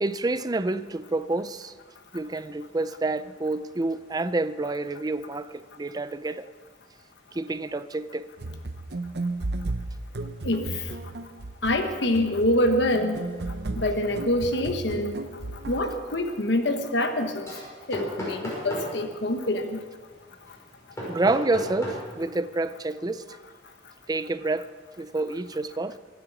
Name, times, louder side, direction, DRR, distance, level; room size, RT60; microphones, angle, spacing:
voice 1, 0.0-1.7 2.1-6.5 7.3-8.3 21.1-23.2 24.1-24.7 25.0-26.0, right 2 dB, 20° right, 0.4 m, -28 dB
sound 1, 8.4-16.0, right 2 dB, 60° right, 0.7 m, -34 dB
voice 2, 10.4-10.9 11.6-13.2 13.8-15.2 15.7-17.5 17.9-19.8, left 1 dB, 65° left, 1.2 m, -25 dB
sound 2, 12.5-12.8 13.2-22.4, equal, 15° left, 5.3 m, -38 dB
24.0 x 8.5 x 6.1 m
head